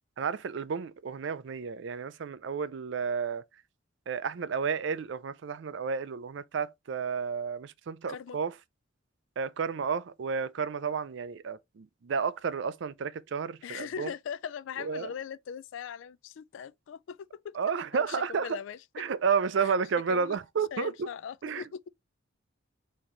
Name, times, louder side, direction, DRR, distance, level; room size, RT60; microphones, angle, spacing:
voice 1, 0.2-3.4 4.1-8.5 9.4-14.1 14.8-15.1 17.6-18.5 19.0-20.9 21.4-21.6, right 6 dB, 65° right, 0.4 m, -31 dB
voice 2, 13.6-17.6 17.9-19.1 19.6-19.7 20.1-20.4 20.7-21.8, left 7 dB, 70° left, 0.3 m, -40 dB
4.3 x 2.9 x 3.7 m
head